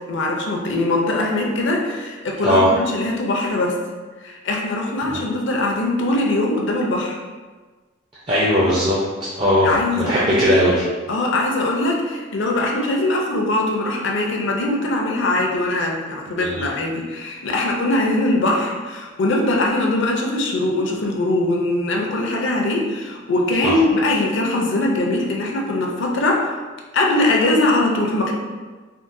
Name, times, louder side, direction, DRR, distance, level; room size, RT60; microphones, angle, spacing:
voice 1, 0.1-3.8 4.2-7.2 9.6-10.5 11.1-26.5 26.9-28.3, left 2 dB, 60° left, 0 dB, 0.5 m, -21 dB
voice 2, 8.3-9.0 9.4-10.8 16.4-16.7 23.6-23.8, equal, 25° right, -7 dB, 0.4 m, -18 dB
3.7 x 2.2 x 2.5 m, 1.3 s
head